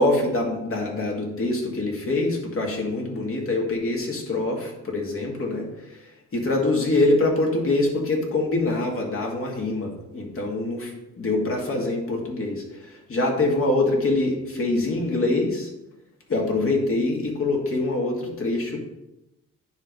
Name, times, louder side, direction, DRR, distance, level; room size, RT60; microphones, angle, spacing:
voice 1, 0.0-15.7 16.3-18.8, left 2 dB, 45° left, 0 dB, 2.1 m, -24 dB
9.4 x 3.4 x 5.3 m, 0.91 s
cardioid pair, 90°, 30 cm